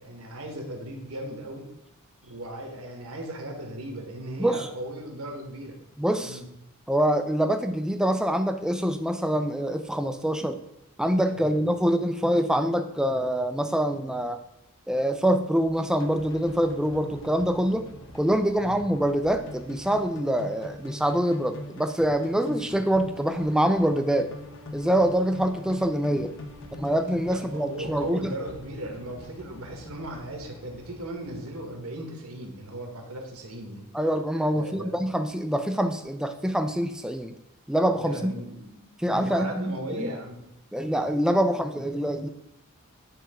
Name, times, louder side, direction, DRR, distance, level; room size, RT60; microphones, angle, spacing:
voice 1, 0.0-1.7 2.2-5.8 6.2-6.5 11.4-11.6 18.6-18.8 27.3-33.9 34.5-35.0 37.9-40.4, right 1 dB, 70° right, 2 dB, 1.6 m, -37 dB
voice 2, 6.0-6.4 6.9-10.6 11.0-14.4 14.9-17.9 18.1-24.3 24.7-26.3 26.7-28.3 33.9-37.3 37.7-38.3 39.0-40.1 40.7-42.3, equal, 5° right, 7 dB, 0.4 m, -25 dB
sound 1, 15.6-31.8, left 1 dB, 60° left, 1.0 m, -43 dB
9.0 x 3.4 x 5.0 m, 0.86 s
head